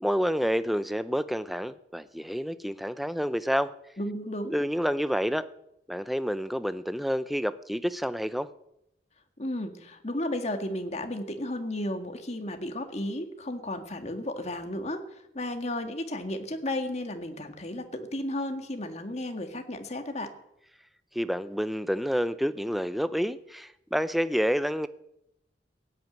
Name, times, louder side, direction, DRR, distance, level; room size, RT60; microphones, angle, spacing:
voice 1, 0.0-3.7 4.5-5.5 5.9-8.5 21.1-24.9, equal, ahead, 13 dB, 0.6 m, -28 dB
voice 2, 4.0-4.5 9.4-15.0 15.3-20.3, left 1 dB, 40° left, 6 dB, 1.8 m, -33 dB
16.5 x 9.4 x 9.0 m, 0.81 s
head